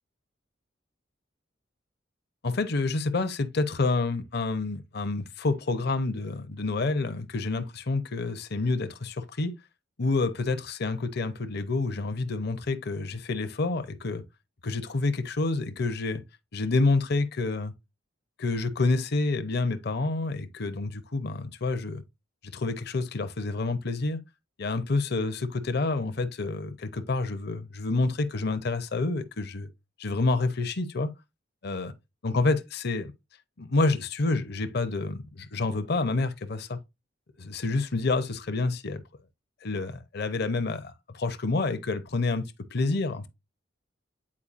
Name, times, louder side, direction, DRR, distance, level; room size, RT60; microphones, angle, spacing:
voice 1, 2.4-9.5 10.0-14.2 14.6-16.2 16.5-17.7 18.4-22.0 22.4-24.2 24.6-29.7 30.0-31.1 31.6-31.9 32.2-33.1 33.6-36.8 37.4-39.0 39.6-43.3, left 3 dB, 60° left, 0.7 m, -28 dB
8.6 x 4.5 x 2.5 m
head